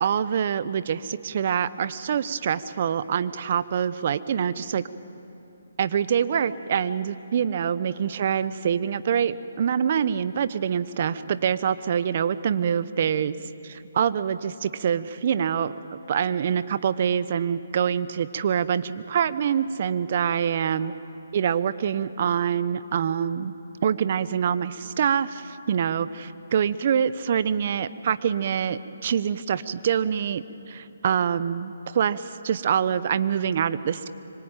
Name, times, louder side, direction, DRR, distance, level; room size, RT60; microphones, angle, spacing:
voice 1, 0.0-4.8 5.8-13.4 13.6-20.9 21.3-23.5 23.8-34.1, right 8 dB, 45° right, 14 dB, 1.0 m, -25 dB
25.5 x 24.5 x 9.1 m, 2.8 s
hypercardioid pair, 155°, 0 cm